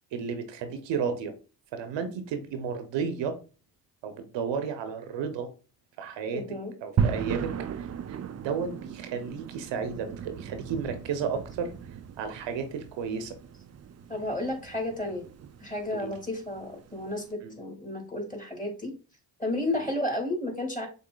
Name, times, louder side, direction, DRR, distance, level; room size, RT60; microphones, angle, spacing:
voice 1, 0.1-1.3 1.7-3.4 4.0-5.5 6.0-8.2 8.4-11.7 12.2-13.4 15.9-16.1 17.4-17.5 19.7-19.9, right 6 dB, 70° right, 8 dB, 0.9 m, -33 dB
voice 2, 6.3-6.7 14.1-15.3 15.6-18.9 19.4-20.9, left 1 dB, 15° left, 1 dB, 2.4 m, -32 dB
sound 1, 7.0-17.2, right 7 dB, 35° right, 0.5 m, -36 dB
6.7 x 2.7 x 2.3 m, 0.34 s
hypercardioid pair, 50°, 45 cm